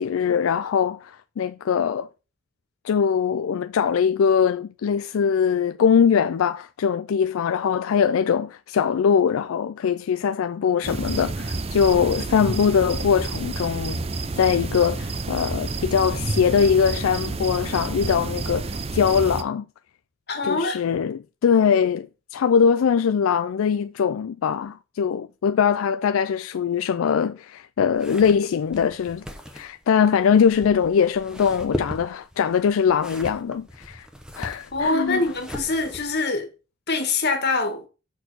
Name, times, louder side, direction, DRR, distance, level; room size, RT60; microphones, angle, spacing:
voice 1, 0.0-2.1 2.8-14.0 14.4-19.6 20.4-29.2 29.5-34.1 34.4-35.2, left 7 dB, 80° left, 0.4 m, -22 dB
sound 1, 10.8-19.4, right 3 dB, 30° right, 0.5 m, -29 dB
voice 2, 20.3-20.8 34.7-36.5 36.9-37.8, left 3 dB, 50° left, 1.9 m, -24 dB
sound 2, 27.9-36.2, equal, 5° right, 1.0 m, -38 dB
6.5 x 4.5 x 6.2 m
head